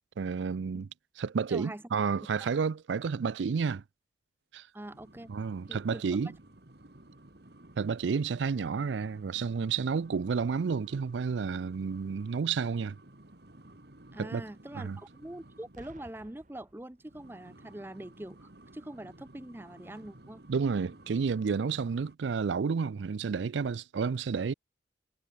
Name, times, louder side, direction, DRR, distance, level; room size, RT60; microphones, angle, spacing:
voice 1, 0.2-0.9 1.2-3.8 4.5-4.7 5.3-6.3 7.8-13.0 14.2-14.4 14.7-15.0 20.5-24.5, right 5 dB, 90° right, 0.4 m, -31 dB
voice 2, 1.5-1.8 4.7-5.3 5.7-6.3 14.1-20.4, right 1 dB, 10° right, 0.6 m, -44 dB
sound 1, 4.8-15.9 17.0-22.2, right 1 dB, 65° right, 1.9 m, -55 dB
Boom, 15.7-17.5 18.4-18.6, right 1 dB, 45° right, 2.8 m, -56 dB
head